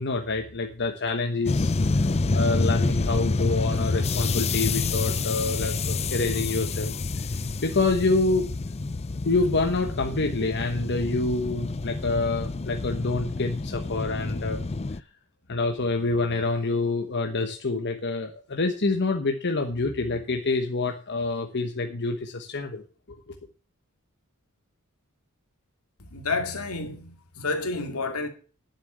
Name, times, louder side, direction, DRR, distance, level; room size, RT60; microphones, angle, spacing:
voice 1, 0.0-2.0 2.3-6.9 7.6-8.5 9.2-14.6 14.9-15.0 15.5-22.8 23.1-23.3, left 3 dB, 50° left, 1.1 m, -27 dB
sound 1, 1.5-15.0, left 3 dB, 30° left, 0.5 m, -28 dB
voice 2, 26.1-28.3, left 3 dB, 80° left, 2.4 m, -30 dB
9.7 x 7.4 x 7.9 m
head